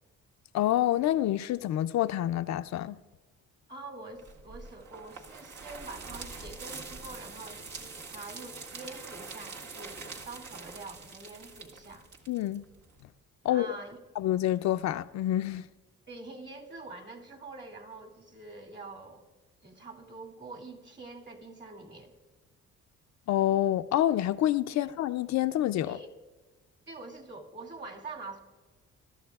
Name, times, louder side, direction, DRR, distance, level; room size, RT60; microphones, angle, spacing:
voice 1, 0.5-3.0 12.3-12.6 13.4-13.7 14.2-15.6 23.3-26.0, left 13 dB, 65° left, 0.4 m, -27 dB
voice 2, 3.7-12.1 13.5-14.0 16.1-19.2 19.6-22.1 24.7-24.9 25.8-26.1 26.9-28.4, right 3 dB, 35° right, 2.3 m, -45 dB
sound 1, 4.2-13.0, right 4 dB, 70° right, 1.9 m, -45 dB
21.5 x 13.0 x 2.3 m
cardioid pair, 90°, 30 cm